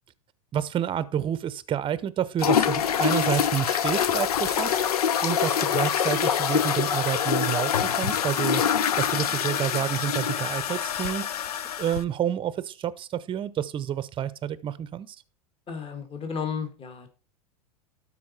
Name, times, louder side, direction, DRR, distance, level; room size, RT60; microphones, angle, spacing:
voice 1, 0.5-8.6 9.0-11.3 11.8-15.2, right 10 dB, 25° right, 16 dB, 0.7 m, -29 dB
sound 1, 2.4-12.0, left 8 dB, 80° left, 0.6 m, -25 dB
voice 2, 15.7-17.1, left 6 dB, 30° left, 6 dB, 1.7 m, -33 dB
12.5 x 4.2 x 4.2 m, 0.35 s
hypercardioid pair, 95°, 19 cm